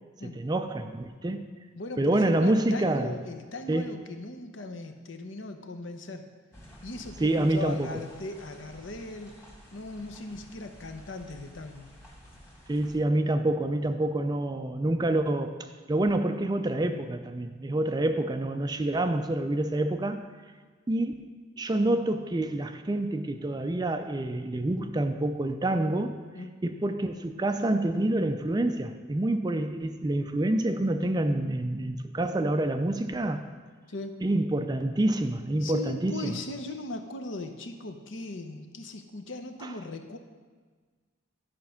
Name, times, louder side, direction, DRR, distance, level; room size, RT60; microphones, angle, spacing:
voice 1, 0.3-1.5 2.0-3.1 3.7-3.9 7.2-7.9 12.7-20.3 20.9-21.1 21.6-26.2 26.6-33.4 34.2-36.3 39.6-39.7, right 1 dB, 20° right, 0.4 m, -27 dB
voice 2, 1.8-6.2 6.8-9.4 9.7-11.9 26.3-26.6 33.9-34.2 35.6-40.2, left 2 dB, 65° left, 0.8 m, -39 dB
sound 1, 6.5-13.0, equal, 10° left, 1.5 m, -51 dB
12.0 x 5.2 x 5.7 m
head